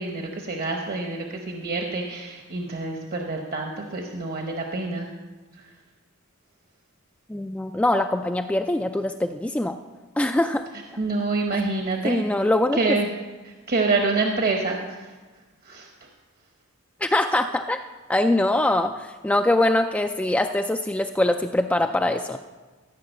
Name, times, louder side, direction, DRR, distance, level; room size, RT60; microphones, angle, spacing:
voice 1, 0.0-5.1 5.5-5.7 11.0-12.2 12.7-13.1 13.4-15.2 15.6-15.9, right 3 dB, 45° right, 2 dB, 1.0 m, -27 dB
voice 2, 7.3-9.8 10.2-10.6 12.0-12.8 17.0-17.8 18.1-22.4, left 1 dB, 5° left, 6 dB, 0.3 m, -23 dB
14.5 x 5.9 x 8.0 m, 1.3 s
head